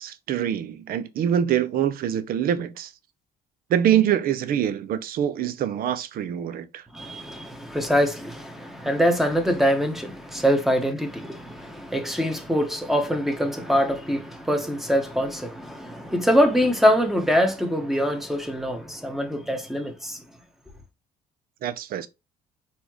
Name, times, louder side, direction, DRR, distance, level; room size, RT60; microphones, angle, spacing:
voice 1, 0.0-2.9 3.7-6.8 21.6-22.1, right 10 dB, 60° right, 0.6 m, -24 dB
voice 2, 6.9-20.2, equal, ahead, 1.1 m, -24 dB
4.2 x 3.6 x 3.0 m
cardioid pair, 110°, 17 cm